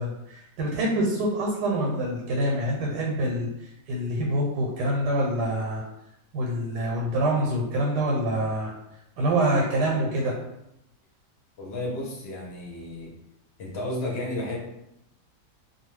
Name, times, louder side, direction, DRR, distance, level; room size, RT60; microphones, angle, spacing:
voice 1, 0.0-3.5 3.9-5.8 6.3-8.7 9.2-10.3, right 1 dB, 90° right, -1 dB, 1.2 m, -26 dB
voice 2, 11.6-13.1 13.6-14.6, left 1 dB, 55° left, -3 dB, 0.7 m, -32 dB
2.5 x 2.3 x 3.0 m, 0.82 s
omnidirectional pair, 1.8 m